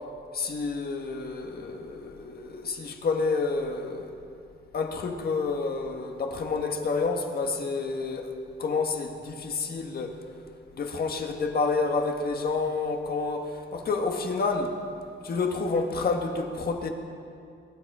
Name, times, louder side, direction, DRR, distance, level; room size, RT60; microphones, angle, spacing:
voice 1, 0.3-4.1 4.7-8.3 8.6-10.1 10.7-14.7 15.2-16.9, left 4 dB, 50° left, 3 dB, 1.7 m, -29 dB
22.0 x 11.0 x 4.9 m, 2.5 s
cardioid pair, 120°, 20 cm